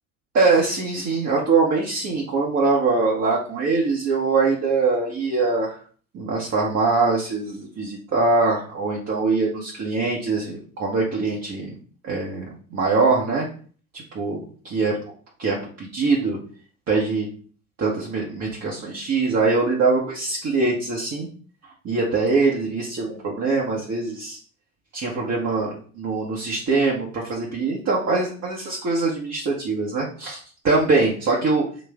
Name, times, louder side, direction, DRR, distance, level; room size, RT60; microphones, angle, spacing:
voice 1, 0.3-5.8 6.1-11.7 12.0-12.5 12.7-13.5 14.1-14.9 15.4-16.4 16.9-17.3 17.8-21.3 21.8-24.4 24.9-30.4 30.6-31.6, right 3 dB, 35° right, -3 dB, 1.1 m, -23 dB
4.1 x 2.5 x 3.5 m, 0.43 s
hypercardioid pair, 60°, 45 cm